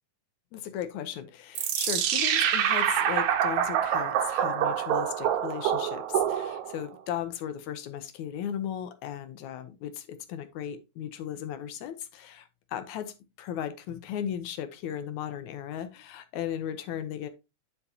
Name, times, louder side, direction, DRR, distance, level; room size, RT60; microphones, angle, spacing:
voice 1, 0.5-17.3, left 10 dB, 75° left, 10 dB, 2.0 m, -36 dB
sound 1, 1.6-6.9, right 9 dB, 70° right, 2.2 m, -26 dB
10.5 x 5.4 x 2.7 m, 0.25 s
omnidirectional pair, 3.6 m